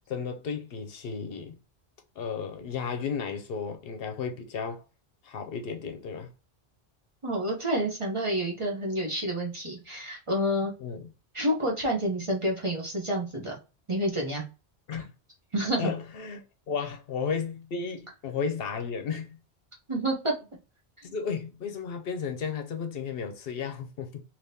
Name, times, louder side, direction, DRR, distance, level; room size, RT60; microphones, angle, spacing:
voice 1, 0.1-1.6 2.2-4.8 5.2-6.3 10.8-11.1 14.9-15.1 15.8-19.4 21.0-24.2, left 6 dB, 70° left, 0.8 m, -34 dB
voice 2, 7.2-10.7 11.3-13.6 13.9-14.5 15.5-15.9 19.9-20.3, right 1 dB, 35° right, 0.7 m, -28 dB
3.5 x 2.8 x 2.7 m
omnidirectional pair, 1.1 m